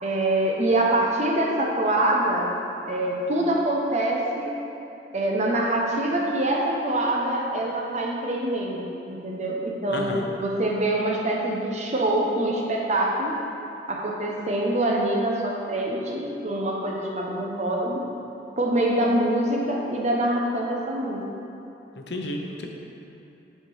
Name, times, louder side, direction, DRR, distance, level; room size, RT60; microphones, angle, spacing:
voice 1, 0.0-2.5 2.9-4.6 5.1-13.3 13.9-18.0 18.6-21.3, right 1 dB, 40° right, -1 dB, 0.9 m, -25 dB
voice 2, 9.9-10.3 22.0-22.7, left 1 dB, 65° left, 1 dB, 0.7 m, -32 dB
7.7 x 4.3 x 5.0 m, 2.9 s
head